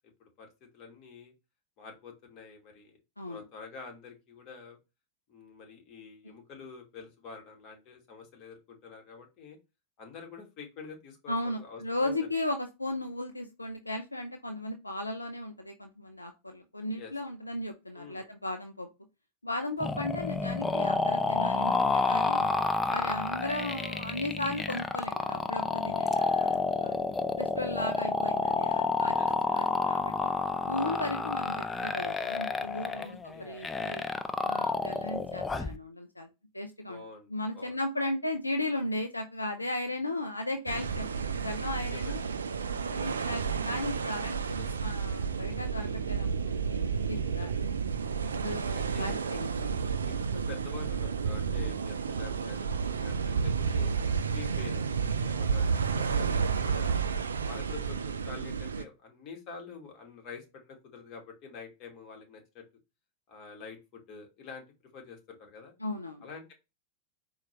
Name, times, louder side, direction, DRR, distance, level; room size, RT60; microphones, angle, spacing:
voice 1, 0.7-1.3 1.8-3.0 3.3-4.8 5.3-9.6 10.0-12.3 16.9-17.1 17.9-18.3 26.2-26.6 29.1-29.3 32.9-33.6 36.9-37.8 41.8-42.2 44.6-44.8 47.2-47.7 48.7-49.2 50.0-54.0 54.3-57.0 57.4-62.6 63.3-64.6 64.9-65.7 66.2-66.5, left 5 dB, 40° left, 3 dB, 1.2 m, -47 dB
voice 2, 11.3-18.9 19.4-22.5 22.9-27.0 27.4-30.3 30.7-34.1 34.4-36.3 36.5-37.0 37.3-41.2 41.4-42.2 42.8-47.5 48.2-49.8 65.8-66.3, left 1 dB, 85° left, 5 dB, 0.4 m, -36 dB
sound 1, 19.8-35.8, left 3 dB, 15° left, 0.3 m, -29 dB
sound 2, 40.7-58.8, right 6 dB, 70° right, 0.3 m, -31 dB
4.4 x 2.3 x 2.9 m, 0.25 s
figure-of-eight pair, 90°, 0 cm